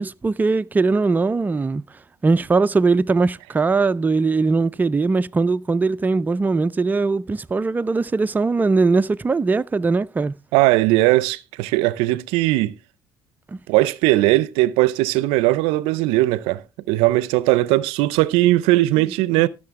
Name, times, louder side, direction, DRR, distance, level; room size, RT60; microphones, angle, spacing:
voice 1, 0.0-1.8 2.2-10.3 13.5-13.6, right 4 dB, 20° right, 0.4 m, -20 dB
voice 2, 10.5-12.8 13.7-19.5, right 18 dB, 85° right, 0.5 m, -19 dB
14.0 x 6.5 x 3.5 m
supercardioid pair, 75°, 9 cm